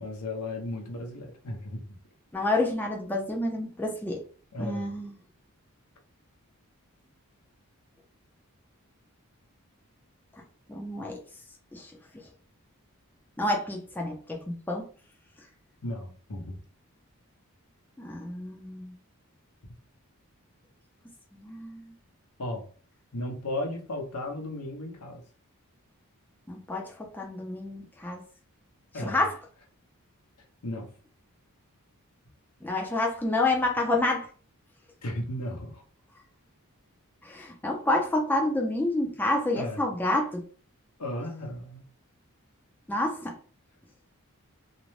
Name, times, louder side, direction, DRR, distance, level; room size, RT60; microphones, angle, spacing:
voice 1, 0.0-1.8 4.5-4.9 15.8-16.6 22.4-22.6 23.1-25.2 28.9-29.2 30.6-30.9 35.0-35.8 39.5-40.2 41.0-41.8, left 1 dB, 85° left, 0.8 m, -35 dB
voice 2, 2.3-4.2 4.6-5.1 10.7-11.2 11.7-11.9 13.4-14.9 18.0-18.9 21.3-21.8 26.5-28.2 29.0-29.3 32.6-34.3 37.2-40.4 42.9-43.4, left 2 dB, 10° left, 0.4 m, -28 dB
2.5 x 2.1 x 3.1 m
head